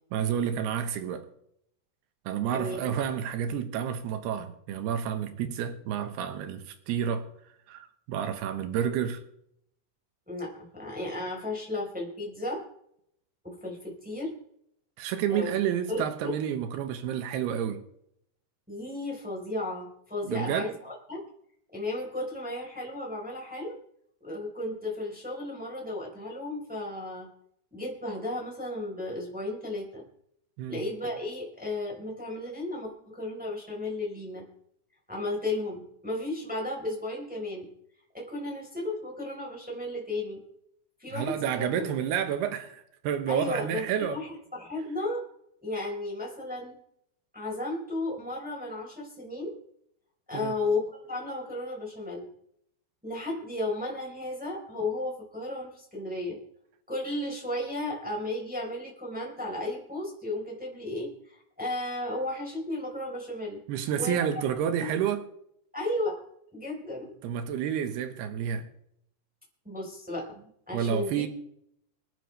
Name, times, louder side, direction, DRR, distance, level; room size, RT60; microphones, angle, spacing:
voice 1, 0.1-1.3 2.3-7.3 7.7-9.2 15.0-17.8 20.2-20.7 30.6-30.8 41.1-44.2 50.3-50.6 63.7-65.3 67.2-68.7 70.7-71.3, right 9 dB, 75° right, 3.1 m, -30 dB
voice 2, 10.3-12.6 13.4-14.3 15.3-15.6 15.9-16.3 18.7-21.2 21.7-23.8 24.2-27.3 27.7-30.0 30.7-34.4 35.1-37.7 38.1-40.4 41.0-41.8 43.3-45.2 45.6-46.7 47.3-49.6 50.3-52.3 53.0-56.4 56.9-63.6 64.0-64.4 64.8-64.9 65.7-66.2 66.5-67.1 69.6-71.2, left 2 dB, ahead, 3.6 m, -34 dB
26.0 x 10.0 x 3.4 m
omnidirectional pair, 5.0 m